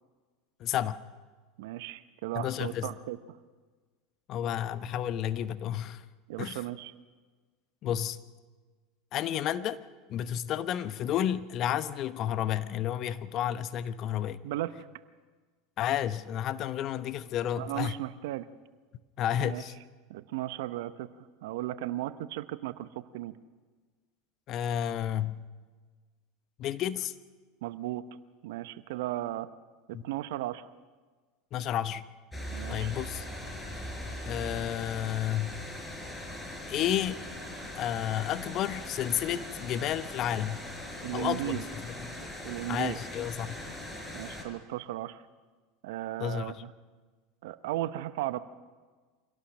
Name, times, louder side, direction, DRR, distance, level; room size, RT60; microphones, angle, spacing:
voice 1, 0.6-1.0 2.3-2.9 4.3-6.0 6.4-6.6 7.8-8.2 9.1-9.8 10.1-14.4 15.8-17.9 19.2-19.7 24.5-25.4 26.6-27.1 29.9-30.0 31.5-32.0 32.7-33.3 34.2-35.6 36.7-37.2 37.8-40.7 41.1-42.1 42.7-43.6 46.2-46.6, left 10 dB, 45° left, 13 dB, 1.0 m, -31 dB
voice 2, 1.6-3.2 6.3-6.9 14.4-14.7 17.6-18.5 19.4-19.6 20.1-21.1 21.4-23.4 27.6-28.0 28.4-29.5 29.9-30.7 32.5-32.9 41.0-41.7 42.4-43.0 44.1-45.2 45.8-46.7 47.4-48.4, right 15 dB, 70° right, 13 dB, 0.9 m, -35 dB
sound 1, 32.3-44.4, left 1 dB, 15° left, 5.2 m, -40 dB
24.5 x 17.5 x 6.3 m, 1.4 s
hypercardioid pair, 85°, 0 cm